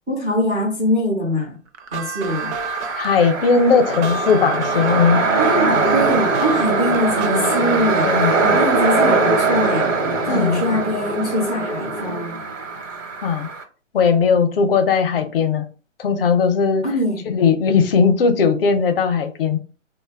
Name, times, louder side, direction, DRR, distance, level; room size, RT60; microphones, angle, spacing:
voice 1, 0.1-1.6 1.9-2.5 5.4-8.1 8.4-9.9 10.3-12.4 16.8-17.2, left 1 dB, 10° right, 0.4 m, -23 dB
sound 1, 1.7-8.3, right 3 dB, 60° right, 0.6 m, -31 dB
sound 2, 2.3-13.6, right 3 dB, 80° right, 1.0 m, -21 dB
voice 2, 3.0-5.3 5.7-5.9 8.0-8.3 10.3-10.8 13.2-13.5 13.9-15.6 16.0-16.9 17.3-19.6, left 5 dB, 45° left, 0.6 m, -18 dB
3.8 x 2.2 x 3.3 m
hypercardioid pair, 140°, 38 cm